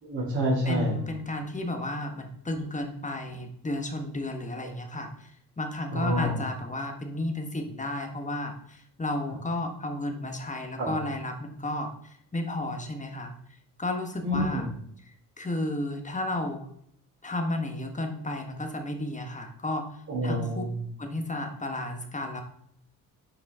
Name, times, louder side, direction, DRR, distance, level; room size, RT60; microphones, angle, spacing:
voice 1, 0.0-0.9 4.6-4.7 5.9-6.4 10.8-10.9 14.2-14.7 20.1-20.7, equal, 45° right, -8 dB, 2.8 m, -28 dB
voice 2, 0.7-5.3 5.6-13.3 13.8-14.6 15.4-16.7 17.2-19.9 20.2-20.6 21.0-22.4, left 1 dB, 20° left, 4 dB, 1.4 m, -33 dB
6.8 x 4.9 x 3.7 m, 0.68 s
supercardioid pair, 65°, 40 cm